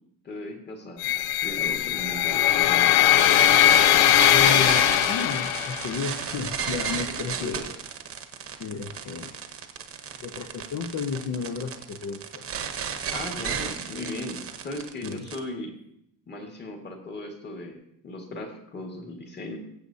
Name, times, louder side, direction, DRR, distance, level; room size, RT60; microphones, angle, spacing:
voice 1, 0.2-3.1 7.2-7.7 13.1-15.7 16.3-19.6, left 2 dB, 25° left, 2 dB, 1.9 m, -37 dB
sound 1, 1.0-6.1, left 12 dB, 75° left, 0.5 m, -20 dB
sound 2, 3.2-15.4, right 7 dB, 35° right, 1.0 m, -33 dB
voice 2, 4.3-7.6 8.6-9.3 10.2-12.5 15.0-15.3, left 5 dB, 50° left, 5 dB, 0.8 m, -33 dB
20.5 x 8.1 x 2.8 m, 0.76 s
cardioid pair, 165°, 38 cm